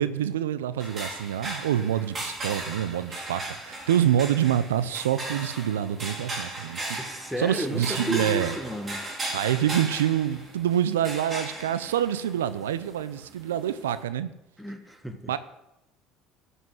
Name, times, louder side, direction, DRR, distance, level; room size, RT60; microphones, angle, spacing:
voice 1, 0.0-8.5 9.3-14.3 15.3-15.4, right 10 dB, 85° right, 0.5 m, -26 dB
sound 1, 0.8-14.0, right 2 dB, 30° right, 3.7 m, -37 dB
voice 2, 7.0-9.0 14.6-15.3, equal, ahead, 1.4 m, -33 dB
11.0 x 5.6 x 7.6 m
hypercardioid pair, 65°, 0 cm